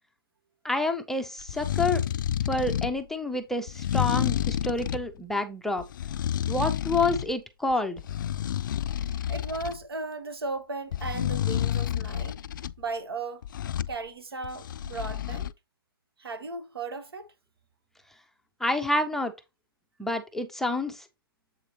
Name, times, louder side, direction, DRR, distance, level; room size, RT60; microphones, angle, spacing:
voice 1, 0.6-2.1 2.5-5.8 6.5-8.0 18.6-19.3 20.0-21.0, left 2 dB, 5° left, 0.5 m, -28 dB
sound 1, 1.4-3.0 3.7-5.1 5.8-7.3 7.7-9.8 10.9-12.7 13.4-14.0 14.4-15.5, left 10 dB, 55° left, 0.4 m, -29 dB
voice 2, 9.0-12.4 12.8-13.4 13.9-15.5 16.2-17.2, right 3 dB, 85° right, 1.6 m, -36 dB
7.6 x 4.7 x 2.9 m
hypercardioid pair, 140°, 12 cm